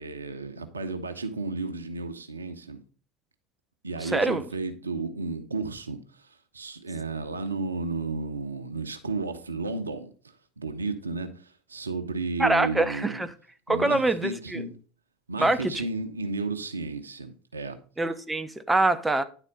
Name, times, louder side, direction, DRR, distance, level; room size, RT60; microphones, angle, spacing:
voice 1, 0.0-2.8 3.8-13.2 13.7-14.7 15.3-17.8, right 3 dB, 80° right, 0.8 m, -33 dB
voice 2, 4.0-4.4 12.4-13.3 13.7-14.6 15.4-15.9 18.0-19.2, right 2 dB, 10° right, 0.8 m, -24 dB
10.0 x 4.1 x 5.2 m
figure-of-eight pair, 75°, 0 cm